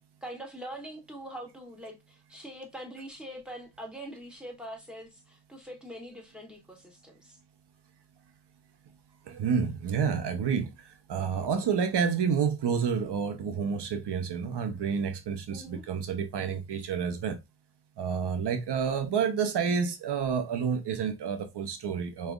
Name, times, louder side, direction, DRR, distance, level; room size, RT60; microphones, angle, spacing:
voice 1, 0.2-7.4 15.5-15.8, right 1 dB, ahead, 2.1 m, -43 dB
voice 2, 9.3-17.4 18.0-22.3, right 6 dB, 90° right, 0.9 m, -29 dB
4.8 x 3.3 x 2.4 m
cardioid pair, 75°, 39 cm